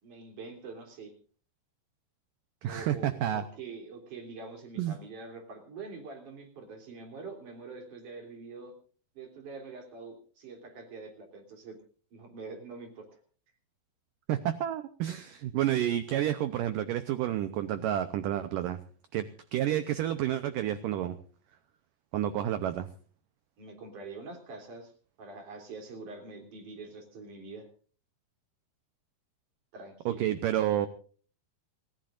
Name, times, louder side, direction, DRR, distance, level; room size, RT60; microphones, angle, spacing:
voice 1, 0.0-1.1 2.7-8.7 9.2-11.8 12.1-13.1 23.6-24.9 25.2-27.7 29.7-30.3, right 4 dB, 50° right, 3 dB, 4.5 m, -45 dB
voice 2, 2.6-3.4 4.8-5.0 14.3-18.8 19.1-21.2 22.1-22.9 30.1-30.9, right 11 dB, 80° right, 11 dB, 1.9 m, -30 dB
28.0 x 15.0 x 2.5 m, 0.41 s
omnidirectional pair, 4.8 m